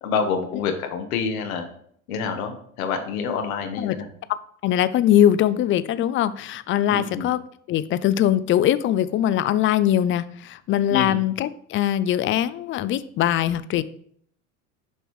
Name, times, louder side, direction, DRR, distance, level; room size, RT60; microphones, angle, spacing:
voice 1, 0.0-1.6 2.1-4.1 6.9-7.3 10.9-11.2, left 6 dB, 85° left, 5 dB, 1.2 m, -27 dB
voice 2, 4.6-7.4 7.7-13.8, left 11 dB, 30° left, 15 dB, 0.4 m, -21 dB
7.0 x 5.4 x 3.1 m, 0.63 s
supercardioid pair, 95°, 41 cm